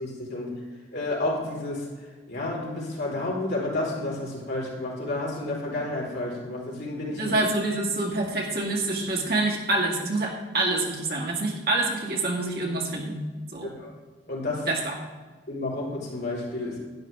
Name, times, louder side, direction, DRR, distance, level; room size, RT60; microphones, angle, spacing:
voice 1, 0.0-7.3 13.6-13.9 14.3-14.7 15.5-16.8, left 2 dB, 65° left, -4 dB, 3.9 m, -31 dB
voice 2, 7.2-13.2 13.5-13.7 14.7-14.8, right 2 dB, 60° right, -2 dB, 2.1 m, -26 dB
12.0 x 10.0 x 3.6 m, 1.4 s
head